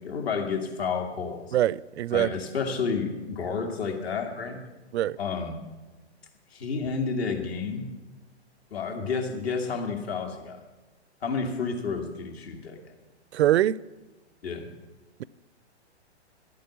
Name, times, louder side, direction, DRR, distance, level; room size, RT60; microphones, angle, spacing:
voice 1, 0.0-1.5 2.1-4.6 5.2-5.6 6.5-7.9 8.7-10.6 11.2-12.8 14.4-14.7, left 5 dB, 65° left, 2.4 m, -30 dB
voice 2, 1.5-2.3 4.9-5.2 13.3-13.8, right 12 dB, 70° right, 0.5 m, -23 dB
12.0 x 8.7 x 8.1 m
hypercardioid pair, 130°, 34 cm